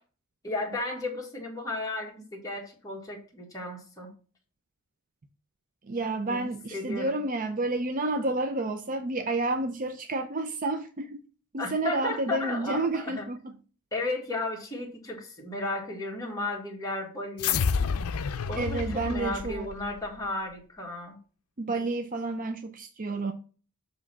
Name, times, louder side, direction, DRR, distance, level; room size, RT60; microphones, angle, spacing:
voice 1, 0.4-4.1 6.3-7.2 11.6-13.2 13.9-17.6 18.5-21.2, left 2 dB, 15° left, 1.8 m, -34 dB
voice 2, 5.8-11.2 11.5-13.5 18.6-19.7 21.6-23.3, right 2 dB, 35° right, 0.5 m, -30 dB
sound 1, 17.4-20.1, left 6 dB, 75° left, 0.5 m, -29 dB
7.3 x 3.2 x 5.6 m
head